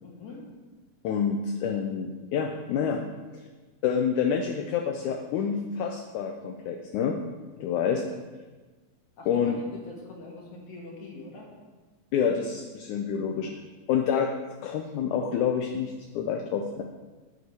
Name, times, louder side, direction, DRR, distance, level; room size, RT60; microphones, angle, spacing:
voice 1, 0.0-0.4 7.8-8.1 9.2-11.5 12.9-13.5, left 2 dB, 60° left, -2 dB, 2.7 m, -44 dB
voice 2, 1.0-3.0 3.3-3.4 3.8-7.2 7.6-8.0 9.3-9.6 12.1-13.5 13.9-14.3 14.6-16.8, left 7 dB, 75° left, 4 dB, 1.8 m, -28 dB
9.8 x 8.4 x 4.7 m, 1.3 s
omnidirectional pair, 4.1 m